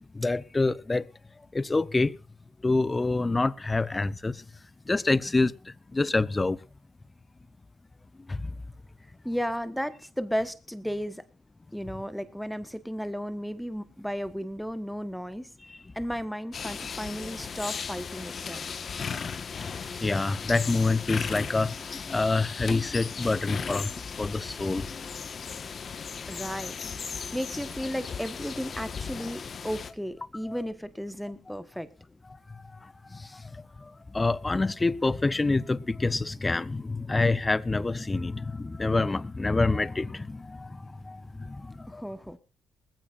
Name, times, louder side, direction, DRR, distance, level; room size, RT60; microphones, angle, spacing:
voice 1, 0.1-1.0 1.5-2.2 2.6-4.4 4.9-6.6 8.3-8.5 19.1-23.9 24.2-24.9 30.5-30.6 33.1-33.4 33.8-42.0, left 3 dB, 20° left, 0.8 m, -27 dB
voice 2, 9.2-11.2 11.7-15.5 15.9-18.9 26.3-31.9 41.9-42.4, equal, ahead, 1.4 m, -34 dB
sound 1, 16.5-29.9, left 6 dB, 45° left, 1.6 m, -36 dB
20.5 x 15.0 x 2.6 m
cardioid pair, 90°, 0 cm